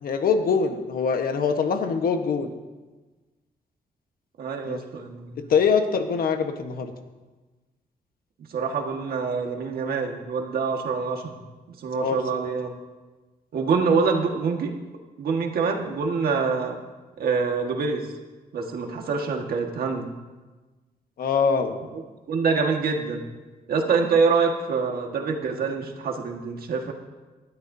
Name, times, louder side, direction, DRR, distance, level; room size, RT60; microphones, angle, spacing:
voice 1, 0.0-2.5 4.7-4.8 5.5-6.9 11.9-12.2 21.2-21.8, left 5 dB, 65° left, 6 dB, 1.3 m, -23 dB
voice 2, 4.4-5.5 8.5-11.4 11.8-12.7 13.5-14.7 15.2-16.8 17.2-18.1 18.5-20.1 21.9-22.0 22.3-23.2 23.7-26.9, right 5 dB, 70° right, 2 dB, 1.7 m, -25 dB
19.5 x 12.5 x 2.7 m, 1.3 s
cardioid pair, 120°, 16 cm